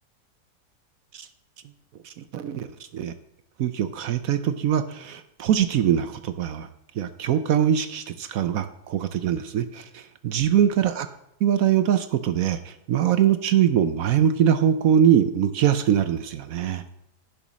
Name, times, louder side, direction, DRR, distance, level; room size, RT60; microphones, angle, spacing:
voice 1, 2.0-2.7 2.9-3.1 3.6-6.7 7.0-11.1 11.4-16.8, right 9 dB, 65° right, 12 dB, 0.9 m, -22 dB
10.5 x 7.0 x 6.2 m, 0.81 s
omnidirectional pair, 1.9 m